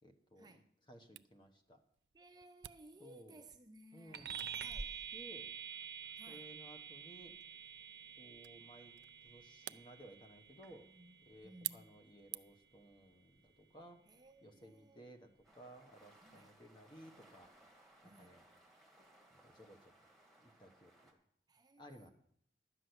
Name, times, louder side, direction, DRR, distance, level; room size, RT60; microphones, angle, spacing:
voice 1, 0.0-0.6 0.9-1.8 3.0-3.4 3.9-4.5 5.1-5.5 6.3-7.3 8.2-8.9 9.2-10.9 11.3-14.0 14.4-15.3 15.6-17.5 18.0-18.4 19.3-19.9 20.4-20.9 21.8-22.1, equal, 25° left, 1.1 m, -58 dB
Camera, 1.2-12.8, right 17 dB, 85° right, 0.4 m, -53 dB
voice 2, 2.1-5.0 6.2-6.5 10.7-11.2 11.4-12.0 14.0-15.0 16.2-16.5 18.0-18.3 21.5-22.1, right 1 dB, 25° right, 0.6 m, -60 dB
sound 1, 4.1-14.0, right 7 dB, 70° right, 0.9 m, -49 dB
sound 2, 15.4-21.1, right 1 dB, ahead, 1.6 m, -65 dB
11.5 x 6.3 x 7.9 m
head